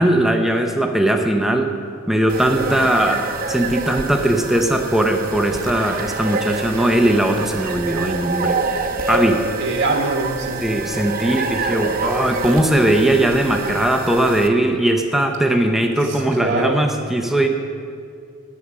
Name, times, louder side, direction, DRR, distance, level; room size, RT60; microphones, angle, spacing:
voice 1, 0.0-1.7 2.1-8.6 9.1-9.4 10.6-17.5, right 1 dB, ahead, 4 dB, 0.6 m, -19 dB
sound 1, 2.3-14.5, right 4 dB, 40° right, 0.8 m, -26 dB
voice 2, 9.6-10.7 16.0-16.8, right 3 dB, 65° right, 0 dB, 1.2 m, -24 dB
12.0 x 8.6 x 6.0 m, 2.3 s
head